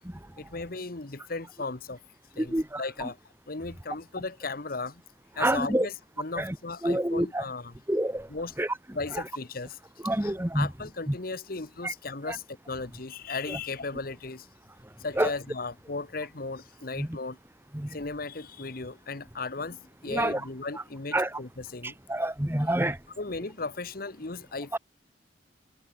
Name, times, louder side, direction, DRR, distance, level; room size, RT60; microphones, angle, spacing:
voice 1, 0.4-2.0 2.4-3.2 3.5-5.0 5.3-7.8 8.3-8.5 8.9-9.8 10.2-14.5 15.0-17.4 17.9-22.0 23.2-24.8, left 3 dB, 55° left, 1.3 m, -36 dB
voice 2, 2.4-2.8 5.4-5.9 6.4-6.5 6.8-7.4 7.9-8.3 8.6-8.7 10.0-10.7 11.8-11.9 12.3-12.4 15.2-15.3 17.0-17.1 17.7-17.9 20.1-20.4 21.1-21.3 22.1-23.0 24.7-24.8, right 1 dB, 15° right, 1.3 m, -27 dB
head